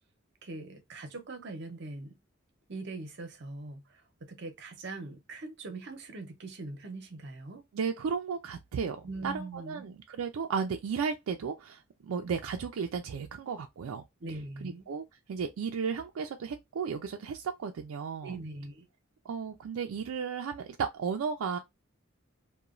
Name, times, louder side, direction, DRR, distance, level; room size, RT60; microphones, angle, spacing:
voice 1, 0.4-2.1 2.7-4.0 4.3-7.7 9.0-9.8 14.2-14.9 18.2-18.8, right 2 dB, 55° right, 0.7 m, -41 dB
voice 2, 7.7-14.0 14.6-18.4 19.3-21.6, right 6 dB, 90° right, 0.4 m, -34 dB
2.9 x 2.1 x 2.4 m
head